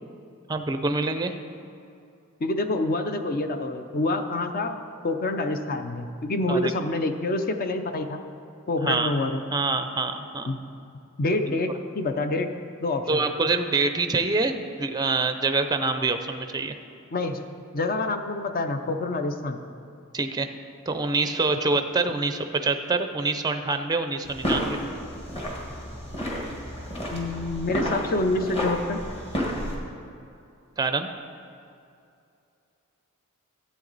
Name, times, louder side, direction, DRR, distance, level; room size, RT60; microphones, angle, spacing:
voice 1, 0.5-1.4 6.5-6.7 8.8-9.1 9.5-10.5 11.5-11.6 13.1-16.7 20.1-20.5 20.9-24.8 30.8-31.1, right 3 dB, 20° right, 8 dB, 0.4 m, -25 dB
voice 2, 2.4-4.7 5.0-8.2 8.7-9.4 10.5-10.6 11.2-12.5 12.8-13.3 17.1-17.4 17.7-19.6 27.1-29.0, left 2 dB, 40° left, 7 dB, 0.5 m, -27 dB
sound 1, 24.2-29.8, equal, 25° left, 1.6 m, -31 dB
13.0 x 8.2 x 4.0 m, 2.5 s
head